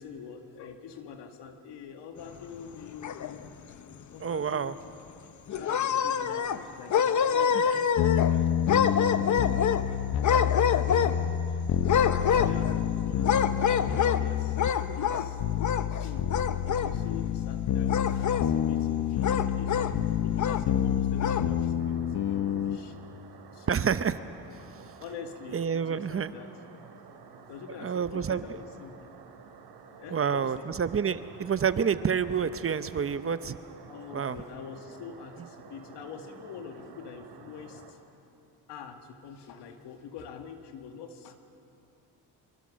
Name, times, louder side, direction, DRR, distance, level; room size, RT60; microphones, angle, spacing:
voice 1, 0.0-3.6 4.1-5.0 5.6-7.9 8.3-9.9 10.3-10.5 10.8-11.6 12.4-14.6 15.0-15.4 15.9-16.4 16.7-23.0 23.5-23.9 25.0-26.5 27.5-29.1 30.0-30.7 33.9-38.0 38.7-41.4, left 6 dB, 85° left, 5 dB, 2.1 m, -45 dB
sound 1, 2.7-3.6 4.0-4.1 4.5-4.6 5.5-6.6 6.9-8.3 8.7-9.8 10.2-11.3 11.8-12.8 13.2-14.2 14.6-15.3 15.6-16.0 16.3-16.9 17.9-18.5 19.2-19.9 20.4-20.6 21.1-21.5, left 7 dB, 45° left, 1.0 m, -26 dB
voice 2, 4.2-4.7 7.5-7.8 23.7-24.2 25.5-26.3 27.8-28.4 30.1-33.6 34.1-34.4, right 7 dB, 35° right, 13 dB, 0.8 m, -28 dB
sound 2, 8.0-22.8, left 10 dB, 65° left, 1.2 m, -28 dB
sound 3, 21.8-37.9, right 6 dB, 75° right, 2.9 m, -51 dB
25.0 x 25.0 x 6.4 m, 2.7 s
cardioid pair, 100°, 40 cm